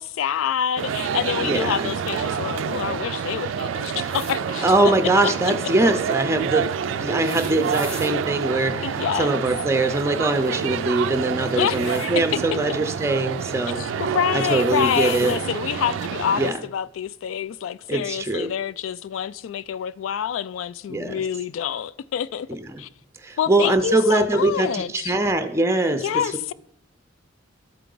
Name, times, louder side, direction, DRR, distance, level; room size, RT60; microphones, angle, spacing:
voice 1, 0.0-4.9 8.8-9.4 11.6-12.2 13.8-22.5 22.8-22.9 23.4-25.2 26.0-26.5, left 9 dB, 80° left, 0.3 m, -27 dB
sound 1, 0.8-16.5, right 7 dB, 70° right, 0.3 m, -28 dB
voice 2, 1.4-1.9 4.6-6.7 7.0-14.0 14.3-15.4 16.4-16.6 17.9-18.5 20.9-21.2 22.5-22.8 23.2-26.1, right 2 dB, 15° right, 0.5 m, -22 dB
sound 2, 4.1-4.4 7.0-8.1 11.4-12.1 13.5-13.7 14.3-15.4 16.5-16.6 17.8-17.9, left 3 dB, 30° left, 0.8 m, -40 dB
12.5 x 4.6 x 3.8 m
head